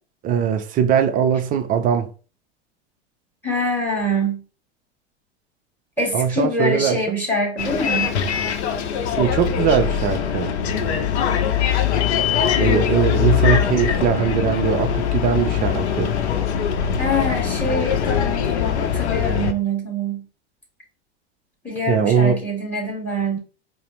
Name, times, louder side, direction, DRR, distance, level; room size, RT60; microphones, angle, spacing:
voice 1, 0.2-2.1 6.1-7.2 9.2-10.5 12.6-16.1 21.9-22.4, right 7 dB, 25° right, 0.4 m, -20 dB
voice 2, 3.4-4.4 6.0-8.2 17.0-20.2 21.6-23.4, equal, 5° left, 2.0 m, -24 dB
Bus, 7.6-19.5, left 8 dB, 75° left, 0.6 m, -22 dB
4.7 x 2.0 x 3.0 m
hypercardioid pair, 100°, 33 cm